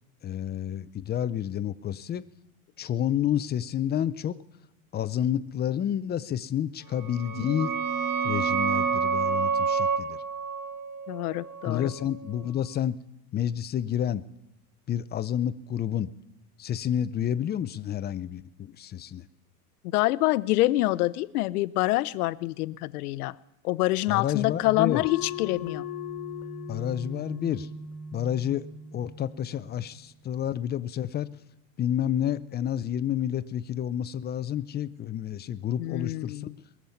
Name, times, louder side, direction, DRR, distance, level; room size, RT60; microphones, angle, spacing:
voice 1, 0.2-2.2 2.8-4.4 4.9-7.7 8.2-10.2 11.7-13.0 13.3-14.2 14.9-16.1 16.6-19.3 24.1-25.0 26.7-27.7 28.1-28.7 28.9-31.3 31.8-36.4, left 10 dB, 25° left, 15 dB, 0.5 m, -29 dB
sound 1, 7.0-12.4, right 5 dB, 85° right, 1.3 m, -29 dB
voice 2, 11.1-11.9 19.9-23.4 23.6-25.8 35.8-36.5, left 18 dB, 80° left, 17 dB, 0.7 m, -26 dB
sound 2, 24.9-30.0, left 5 dB, 55° left, 1.4 m, -38 dB
22.0 x 7.4 x 7.0 m, 0.89 s
supercardioid pair, 110°, 44 cm